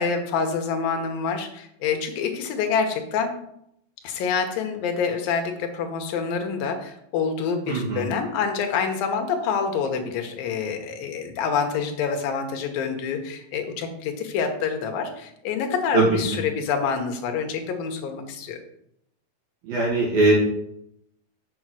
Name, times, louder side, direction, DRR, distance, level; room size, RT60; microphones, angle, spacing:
voice 1, 0.0-3.3 4.0-18.6, left 6 dB, 70° left, 5 dB, 2.6 m, -27 dB
voice 2, 7.7-8.1 15.9-16.4 19.7-20.3, right 2 dB, 65° right, -5 dB, 3.6 m, -21 dB
7.3 x 5.4 x 6.1 m, 0.75 s
omnidirectional pair, 4.6 m